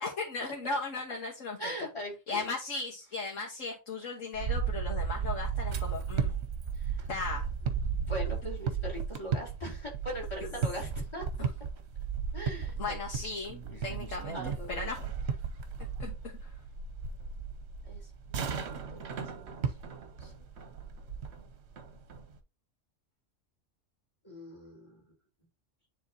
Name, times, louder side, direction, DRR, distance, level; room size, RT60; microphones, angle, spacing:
voice 1, 0.0-1.6 2.3-6.3 7.1-7.4 11.4-11.5 12.8-15.1 16.0-16.1, left 3 dB, 80° left, -1 dB, 1.7 m, -36 dB
voice 2, 1.6-2.5 6.8-7.0 8.0-11.3 12.3-13.0 13.8-14.0 14.3-15.0 17.8-18.0 18.3-19.6 19.9-20.5 24.2-25.0, equal, 20° left, -2 dB, 3.5 m, -41 dB
sound 1, 4.3-22.4, right 6 dB, 60° right, 1.1 m, -35 dB
9.9 x 3.8 x 2.8 m, 0.28 s
omnidirectional pair, 1.3 m